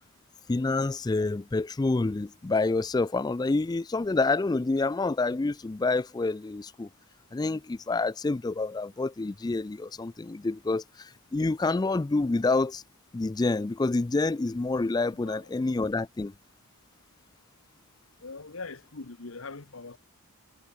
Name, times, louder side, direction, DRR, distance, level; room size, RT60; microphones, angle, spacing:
voice 1, 0.5-6.9 7.3-12.8 13.1-16.3, left 3 dB, 20° left, 0.3 m, -28 dB
voice 2, 15.1-15.5 18.2-20.0, left 3 dB, 65° left, 1.2 m, -42 dB
head